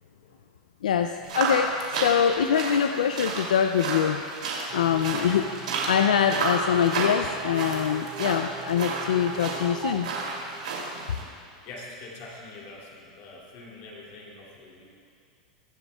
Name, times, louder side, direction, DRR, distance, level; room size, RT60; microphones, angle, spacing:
voice 1, 0.8-4.2 4.7-5.5 5.9-10.1, left 8 dB, 85° left, 7 dB, 0.4 m, -24 dB
sound 1, 1.2-11.2, right 3 dB, 85° right, 2.8 m, -32 dB
sound 2, 4.7-11.2, right 7 dB, 25° right, 0.5 m, -41 dB
voice 2, 5.1-5.4 11.6-14.8, left 2 dB, 55° left, -3 dB, 2.6 m, -44 dB
23.0 x 8.1 x 2.3 m, 2.4 s
hypercardioid pair, 115°, 4 cm